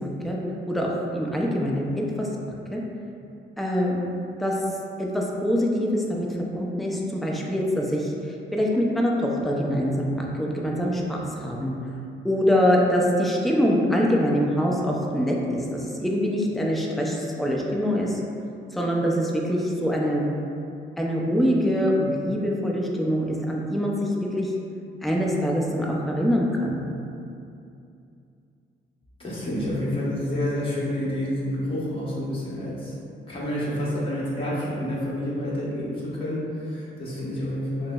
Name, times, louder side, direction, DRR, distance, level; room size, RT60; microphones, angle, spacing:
voice 1, 0.0-0.4 0.7-2.3 2.7-2.8 3.6-4.0 4.4-4.6 5.0-6.3 6.5-8.1 8.5-11.7 12.2-18.2 18.7-20.3 21.0-24.5 25.0-26.8, equal, ahead, -2 dB, 0.4 m, -24 dB
voice 2, 29.2-32.9 33.3-37.9, left 1 dB, 25° left, -8 dB, 1.1 m, -28 dB
6.0 x 2.0 x 2.3 m, 2.6 s
cardioid pair, 90°, 20 cm